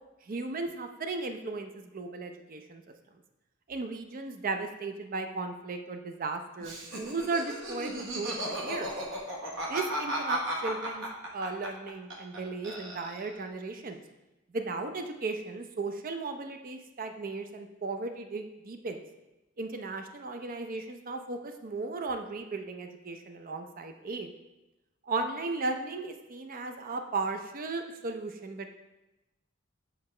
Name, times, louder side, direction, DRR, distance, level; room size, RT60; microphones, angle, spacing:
voice 1, 0.2-2.8 3.7-8.9 9.7-11.1 11.3-14.0 14.5-19.0 19.6-24.3 25.1-28.7, right 3 dB, 45° right, 6 dB, 0.5 m, -36 dB
Laughter, 6.6-12.4 12.6-13.4, right 1 dB, 65° right, 1.2 m, -35 dB
7.9 x 4.7 x 3.2 m, 0.99 s
head